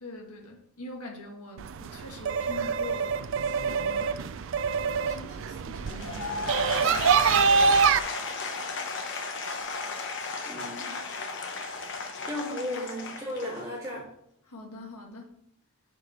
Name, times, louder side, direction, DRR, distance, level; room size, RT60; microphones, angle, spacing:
voice 1, 0.0-4.8 5.0-7.6 8.2-8.4 12.0-12.7 14.5-15.3, left 2 dB, 90° left, 1 dB, 1.6 m, -44 dB
sound 1, 1.6-8.0, right 5 dB, 55° right, 0.3 m, -25 dB
Applause / Crowd, 5.8-14.0, left 4 dB, 55° left, 0.9 m, -35 dB
voice 2, 10.5-11.0 12.3-14.1, left 1 dB, 15° right, -6 dB, 2.8 m, -35 dB
6.1 x 4.9 x 5.6 m, 0.69 s
head